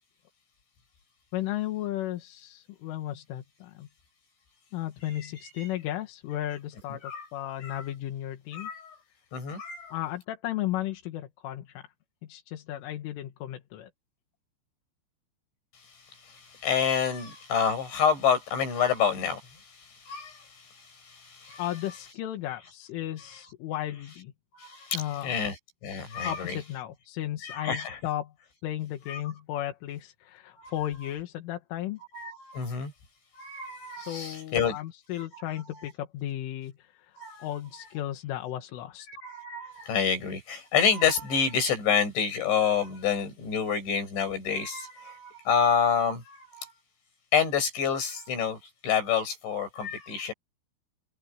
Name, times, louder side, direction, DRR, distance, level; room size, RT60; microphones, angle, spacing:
voice 1, 1.3-3.9 4.7-8.7 9.9-11.8 12.3-13.9 21.6-24.3 24.9-25.4 26.2-28.3 28.6-32.0 34.1-37.2 37.4-39.1, left 13 dB, 85° left, 4.3 m, -35 dB
voice 2, 8.5-8.9 9.3-9.9 16.3-21.6 24.5-25.6 25.8-26.6 27.4-28.0 29.1-29.2 30.6-30.7 32.1-32.9 33.3-34.8 35.3-35.4 37.2-37.5 39.1-46.7 47.3-50.3, left 7 dB, 70° left, 9.5 m, -28 dB
omnidirectional pair, 5.5 m